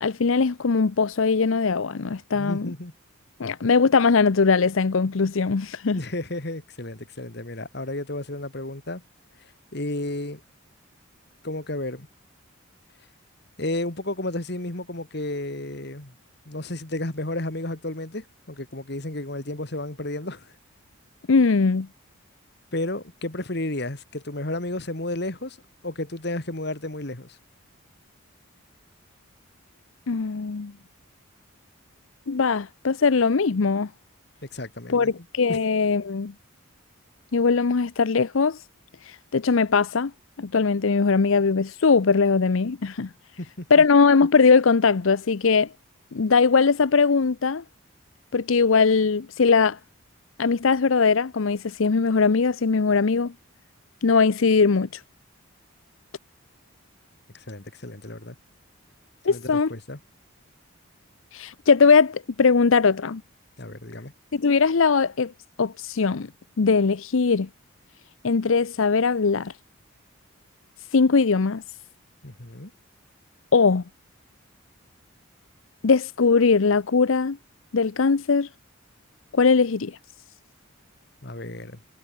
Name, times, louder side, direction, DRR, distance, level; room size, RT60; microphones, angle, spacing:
voice 1, 0.0-2.7 3.4-6.0 21.3-21.9 30.1-30.7 32.3-33.9 34.9-36.3 37.3-38.6 39.1-40.1 40.4-43.1 43.7-45.7 46.1-47.6 48.3-49.8 50.4-53.3 54.0-54.9 59.2-59.7 61.3-63.2 64.3-65.3 65.6-66.3 66.6-67.5 68.2-69.5 70.9-71.6 73.5-73.8 75.8-77.4 77.7-78.5 79.3-80.0, left 5 dB, 70° left, 0.6 m, -20 dB
voice 2, 2.3-2.9 5.9-9.0 9.7-10.4 11.4-12.1 13.6-16.1 16.5-20.5 22.7-25.6 25.8-27.4 34.5-35.6 43.4-43.7 57.3-58.4 59.3-60.0 63.6-64.1 72.2-72.7 81.2-81.8, left 1 dB, 50° left, 2.2 m, -32 dB
head